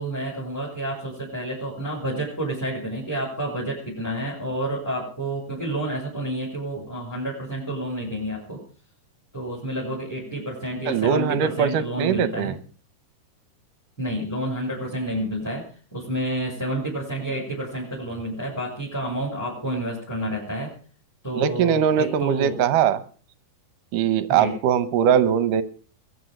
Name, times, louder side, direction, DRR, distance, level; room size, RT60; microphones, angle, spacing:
voice 1, 0.0-8.6 9.3-12.5 14.0-15.6 15.9-20.7 21.2-22.6 24.3-24.5, right 1 dB, 5° left, -6 dB, 6.4 m, -29 dB
voice 2, 10.9-12.6 21.4-23.0 23.9-25.6, right 8 dB, 70° right, 14 dB, 2.3 m, -21 dB
22.5 x 8.5 x 6.6 m, 0.42 s
omnidirectional pair, 4.2 m